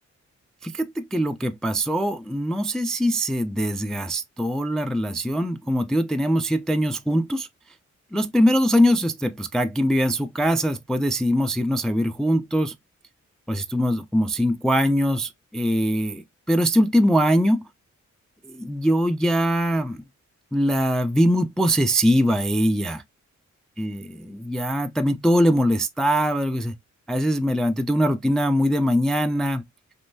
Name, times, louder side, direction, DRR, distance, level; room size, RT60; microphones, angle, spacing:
voice 1, 0.6-7.5 8.1-12.7 13.5-17.6 18.5-20.0 20.5-23.0 23.8-26.8 27.1-29.6, equal, ahead, 0.3 m, -22 dB
3.6 x 2.5 x 2.7 m
cardioid pair, 70°, 30 cm